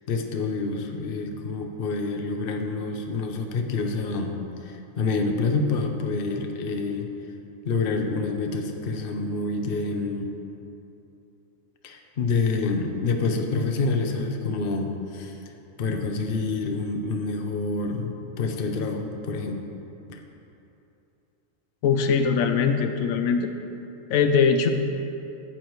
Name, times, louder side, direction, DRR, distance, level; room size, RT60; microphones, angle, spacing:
voice 1, 0.1-4.4 4.6-7.1 7.6-10.3 11.8-15.4 15.8-19.6 20.1-20.2, left 3 dB, 50° left, 4 dB, 0.8 m, -27 dB
voice 2, 21.8-23.5 24.1-24.7, left 6 dB, 85° left, 6 dB, 1.0 m, -21 dB
12.0 x 8.5 x 3.1 m, 2.8 s
omnidirectional pair, 1.4 m